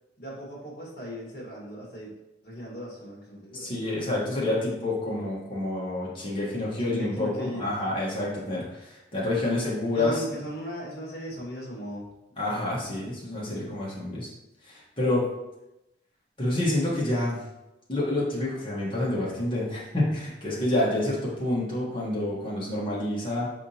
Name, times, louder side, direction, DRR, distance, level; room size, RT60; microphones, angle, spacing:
voice 1, 0.2-2.1 2.4-3.7 6.8-8.2 9.9-12.0 12.4-12.6 13.3-13.7, equal, 55° left, -5 dB, 1.7 m, -38 dB
voice 2, 3.5-10.2 12.4-14.3 14.6-15.3 16.4-17.4 17.9-23.5, left 1 dB, 30° left, -6 dB, 1.3 m, -28 dB
5.0 x 3.6 x 2.9 m, 0.93 s
head